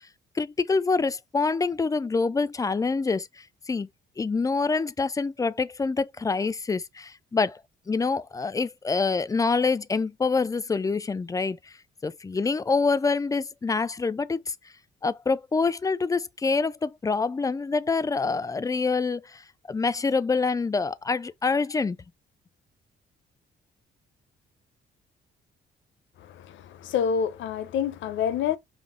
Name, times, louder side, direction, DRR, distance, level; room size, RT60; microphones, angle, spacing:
voice 1, 0.4-3.3 3.7-3.9 4.2-7.6 7.9-11.6 12.0-14.5 15.0-19.4 19.7-22.0, left 4 dB, 15° left, 0.3 m, -26 dB
voice 2, 26.2-28.6, left 7 dB, 75° left, 0.5 m, -28 dB
5.3 x 2.0 x 3.7 m
cardioid pair, 90°, 20 cm